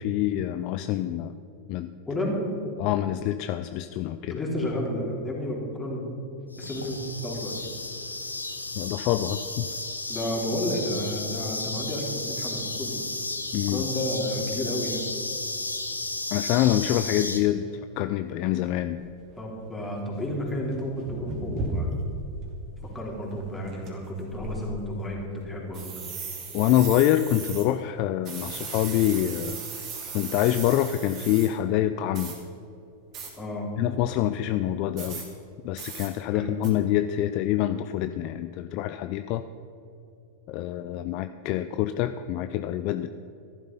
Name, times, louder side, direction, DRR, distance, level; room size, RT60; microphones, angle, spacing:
voice 1, 0.0-1.3 1.7-1.9 2.8-4.4 8.8-9.7 13.5-13.8 16.3-17.7 18.0-19.0 26.5-29.6 30.1-32.3 33.8-35.2 35.6-39.4 40.5-43.1, left 12 dB, 45° left, 10 dB, 0.4 m, -26 dB
voice 2, 2.0-2.4 4.3-6.1 6.6-7.7 10.1-13.0 13.7-15.0 19.4-21.9 22.9-26.0 33.4-33.7 36.3-36.5, left 1 dB, 10° left, -2 dB, 3.6 m, -31 dB
sound 1, 6.5-17.4, left 2 dB, 80° left, 1.2 m, -33 dB
sound 2, 18.2-18.3 19.0-19.1 19.7-19.8 20.0-22.5 22.8-23.0 23.3-23.9 24.3-25.1 25.7-27.7 28.3-31.5 32.1-32.4 33.1-33.3 35.0-35.3 35.8-36.1 36.6-36.7, right 3 dB, 35° right, 2.9 m, -36 dB
14.5 x 11.5 x 5.6 m, 2.8 s
figure-of-eight pair, 90°, 0 cm